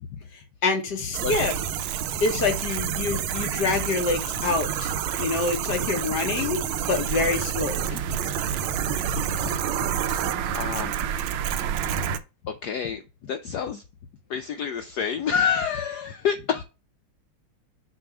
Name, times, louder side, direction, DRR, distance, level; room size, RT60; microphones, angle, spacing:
voice 1, 0.6-1.5 2.2-4.9 5.2-8.0 10.4-10.5, left 4 dB, 55° left, 1.6 m, -26 dB
sound 1, 1.1-12.2, right 9 dB, 80° right, 1.4 m, -28 dB
voice 2, 9.0-9.5 10.1-11.1 11.9-12.0 12.4-13.8 14.3-16.6, left 7 dB, 90° left, 0.9 m, -29 dB
6.8 x 2.8 x 5.8 m
omnidirectional pair, 2.4 m